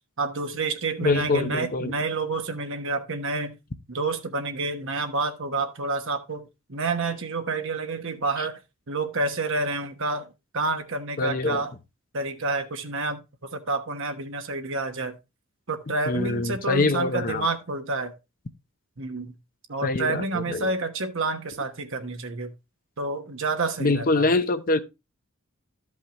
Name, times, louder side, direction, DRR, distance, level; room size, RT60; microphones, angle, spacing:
voice 1, 0.2-3.6 3.9-8.6 8.9-11.7 12.1-15.2 15.7-18.1 19.0-19.3 19.7-22.5 23.0-24.3, right 3 dB, 65° right, 1.2 m, -29 dB
voice 2, 1.0-1.9 11.2-11.7 16.1-17.5 19.8-20.7 23.8-24.8, left 3 dB, 40° left, 0.7 m, -24 dB
13.0 x 5.5 x 3.0 m
head